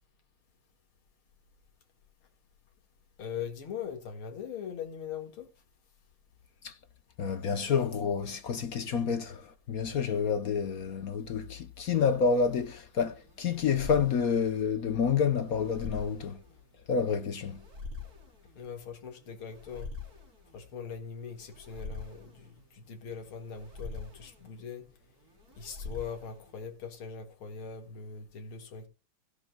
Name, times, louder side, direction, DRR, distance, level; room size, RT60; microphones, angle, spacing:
voice 1, 3.2-5.5 18.6-19.9 20.5-24.9 25.6-28.9, left 6 dB, 90° left, 2.7 m, -41 dB
voice 2, 7.2-16.4 16.9-17.6, left 6 dB, 55° left, 1.0 m, -29 dB
sound 1, 12.2-26.7, left 4 dB, 45° right, 4.3 m, -46 dB
17.0 x 11.5 x 2.2 m
omnidirectional pair, 2.3 m